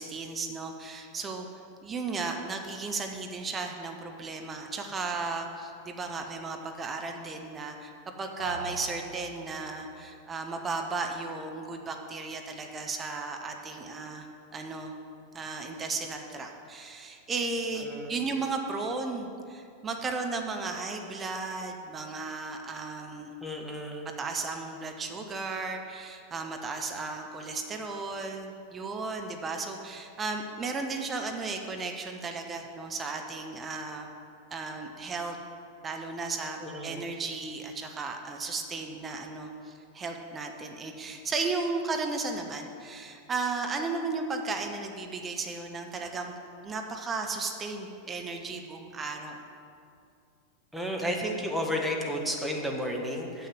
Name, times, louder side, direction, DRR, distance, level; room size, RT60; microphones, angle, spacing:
voice 1, 0.0-1.5 1.8-7.9 8.2-14.3 14.5-14.9 15.3-23.4 24.2-34.1 34.5-35.4 35.8-46.4 46.6-49.4, right 3 dB, 20° right, 3 dB, 0.8 m, -35 dB
sound 1, 8.4-9.9, right 2 dB, 75° right, 1.0 m, -40 dB
voice 2, 17.8-18.1 23.4-24.1 36.6-37.0 50.7-53.5, equal, ahead, -1 dB, 1.3 m, -32 dB
7.5 x 6.6 x 7.7 m, 2.4 s
figure-of-eight pair, 90°, 0 cm